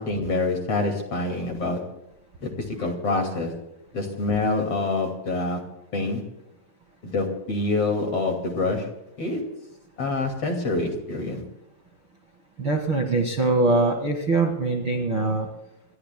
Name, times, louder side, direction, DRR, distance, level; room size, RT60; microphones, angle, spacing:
voice 1, 0.0-1.9 2.4-3.6 3.9-6.2 7.0-8.9 9.2-9.4 10.0-11.4, left 3 dB, 40° left, 3 dB, 2.8 m, -26 dB
voice 2, 12.6-15.5, right 3 dB, 45° right, 2 dB, 1.8 m, -23 dB
28.0 x 21.5 x 2.2 m, 0.86 s
omnidirectional pair, 4.6 m